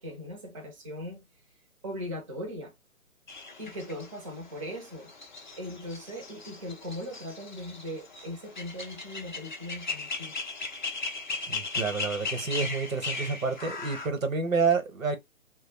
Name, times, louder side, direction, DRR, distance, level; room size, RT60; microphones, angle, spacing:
voice 1, 0.0-1.3 1.8-2.7 3.6-5.1 5.6-10.4, equal, 25° right, 0.6 m, -39 dB
sound 1, 3.3-14.1, left 4 dB, 35° left, 0.4 m, -37 dB
voice 2, 11.5-15.2, right 5 dB, 70° right, 1.0 m, -29 dB
2.3 x 2.1 x 3.1 m
figure-of-eight pair, 145°, 42 cm